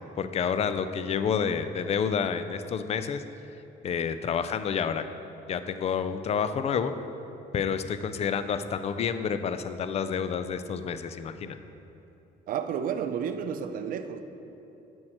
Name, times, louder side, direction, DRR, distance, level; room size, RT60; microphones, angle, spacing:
voice 1, 0.0-3.2 3.8-5.0 5.5-6.9 7.5-11.6, left 7 dB, 40° left, 11 dB, 0.4 m, -29 dB
voice 2, 12.5-14.2, right 7 dB, 55° right, 9 dB, 0.5 m, -31 dB
8.8 x 6.3 x 4.3 m, 2.9 s
cardioid pair, 110°, 17 cm